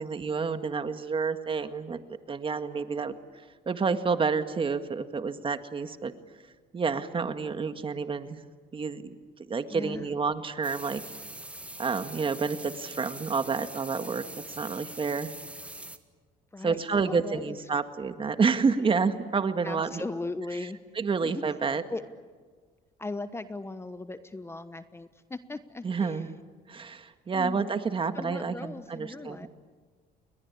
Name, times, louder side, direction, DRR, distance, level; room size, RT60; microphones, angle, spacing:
voice 1, 0.0-3.1 3.7-6.1 6.7-8.4 8.7-9.2 9.5-11.0 11.8-14.2 14.6-15.3 16.6-20.0 21.0-21.8 25.8-26.3 26.7-29.5, right 5 dB, 30° right, 9 dB, 1.8 m, -29 dB
voice 2, 9.7-10.1 16.5-17.6 19.6-20.8 21.2-21.4 21.9-22.0 23.0-26.3 27.3-27.7 28.1-29.5, left 2 dB, 15° left, 12 dB, 1.1 m, -38 dB
sound 1, 10.6-16.0, right 1 dB, 5° right, 1.8 m, -43 dB
30.0 x 22.0 x 8.6 m, 1.5 s
cardioid pair, 110°, 17 cm